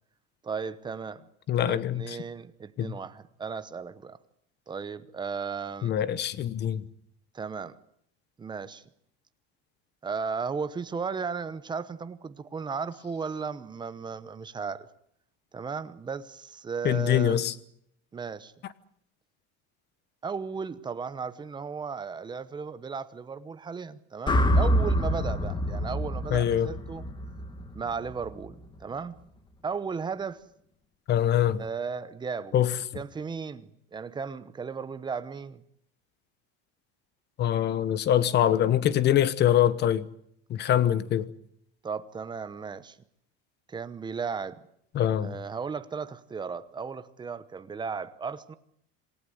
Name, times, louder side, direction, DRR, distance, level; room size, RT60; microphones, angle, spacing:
voice 1, 0.4-1.2 1.6-4.2 4.7-6.0 7.3-7.8 8.4-8.8 10.0-14.9 15.5-17.4 18.1-18.5 20.2-27.0 27.7-29.2 29.6-30.4 31.6-32.6 32.9-35.6 41.8-43.0 43.7-44.6 45.2-48.6, right 5 dB, 15° right, 0.9 m, -35 dB
voice 2, 1.5-2.0 2.8-2.9 5.8-6.8 16.8-17.5 26.3-26.7 31.1-31.6 32.5-32.7 37.4-40.1 40.5-41.3 44.9-45.4, left 11 dB, 30° left, 1.1 m, -24 dB
sound 1, 24.3-28.5, equal, 15° left, 1.6 m, -27 dB
27.0 x 16.5 x 9.5 m
cardioid pair, 170°, 33 cm